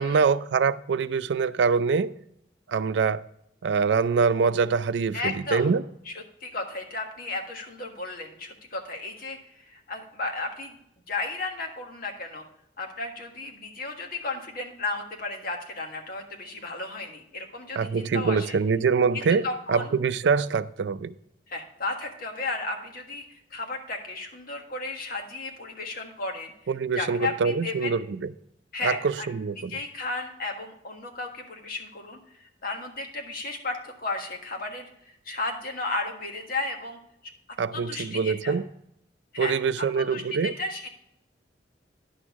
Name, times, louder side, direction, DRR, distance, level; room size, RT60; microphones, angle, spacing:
voice 1, 0.0-2.1 2.7-3.2 3.6-5.8 17.8-21.1 26.7-28.3 28.8-29.7 37.6-38.6 39.4-40.5, right 5 dB, 90° right, 0.4 m, -24 dB
voice 2, 5.1-5.7 6.0-6.1 6.4-10.7 11.1-12.4 12.8-18.5 19.4-19.9 21.5-26.5 26.9-27.9 28.7-29.3 29.6-37.0 37.7-38.5 39.3-40.2 40.6-40.9, left 3 dB, 55° left, 1.5 m, -34 dB
10.0 x 6.3 x 3.5 m
head